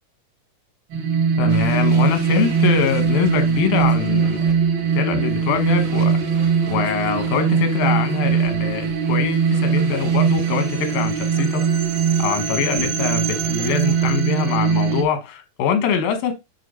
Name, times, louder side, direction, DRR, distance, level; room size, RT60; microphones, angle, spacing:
sound 1, 0.9-15.0, right 6 dB, 90° right, 3.3 m, -20 dB
voice 1, 1.4-4.6 4.9-11.6 12.2-16.3, left 6 dB, 85° left, 3.0 m, -23 dB
sound 2, 1.5-14.1, right 2 dB, 40° right, 1.3 m, -38 dB
9.9 x 3.7 x 5.5 m
omnidirectional pair, 4.0 m